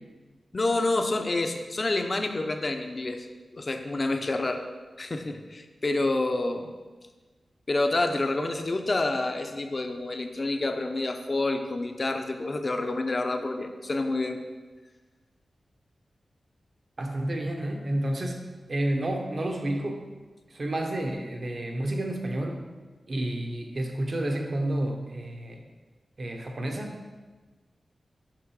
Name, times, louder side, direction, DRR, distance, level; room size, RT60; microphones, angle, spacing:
voice 1, 0.5-3.3 3.5-4.6 5.0-6.7 7.7-14.4, left 2 dB, 40° left, 6 dB, 0.6 m, -28 dB
voice 2, 17.0-20.0 20.5-22.6 23.1-25.6 26.2-27.0, right 1 dB, 50° right, 3 dB, 0.9 m, -30 dB
6.0 x 6.0 x 4.8 m, 1.3 s
wide cardioid pair, 95°, 0 cm